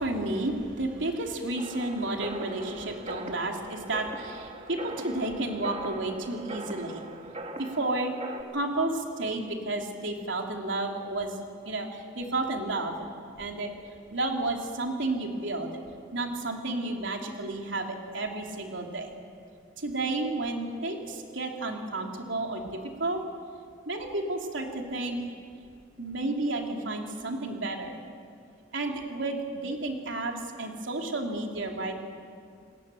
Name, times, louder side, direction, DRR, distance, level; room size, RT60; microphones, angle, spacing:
voice 1, 0.0-7.0 7.6-8.1 8.5-11.4 11.6-13.1 13.4-13.8 14.1-15.8 16.1-19.1 19.8-23.2 23.9-25.3 26.0-28.0 28.7-32.0, right 2 dB, 75° right, 2 dB, 3.2 m, -31 dB
sound 1, 1.6-8.4, right 1 dB, 35° right, 1.8 m, -41 dB
28.5 x 20.0 x 7.8 m, 2.3 s
head